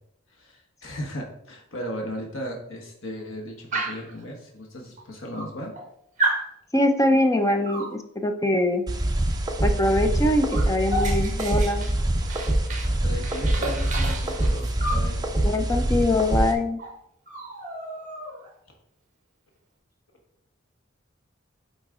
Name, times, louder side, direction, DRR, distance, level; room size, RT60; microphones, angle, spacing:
voice 1, 0.3-5.7 12.6-15.2, equal, 75° left, 0 dB, 1.3 m, -36 dB
Dog, 3.7-4.1 5.0-5.1 5.3-5.9 6.2-6.5 7.7-8.0 9.8-9.9 10.2-12.9 13.2-15.1 16.4-16.5 16.8-17.0 17.3-18.5, right 2 dB, 40° right, 1.3 m, -31 dB
voice 2, 6.7-8.8 9.6-11.9 15.4-16.8, left 1 dB, 15° left, 6 dB, 0.6 m, -23 dB
sound 1, 8.9-16.5, right 1 dB, 20° right, 0.7 m, -25 dB
8.9 x 4.0 x 3.7 m, 0.73 s
head